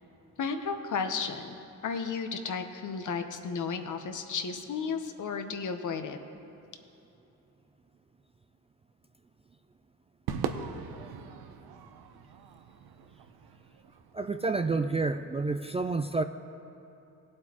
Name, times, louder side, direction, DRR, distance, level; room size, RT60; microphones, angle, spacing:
voice 1, 0.4-1.5 1.8-6.2, left 5 dB, 55° left, 7 dB, 1.0 m, -33 dB
Crowd / Fireworks, 10.3-14.8, right 7 dB, 80° right, 0.8 m, -40 dB
voice 2, 14.1-16.2, right 3 dB, 15° right, 8 dB, 0.3 m, -29 dB
17.5 x 7.8 x 3.0 m, 2.9 s
supercardioid pair, 70°, 37 cm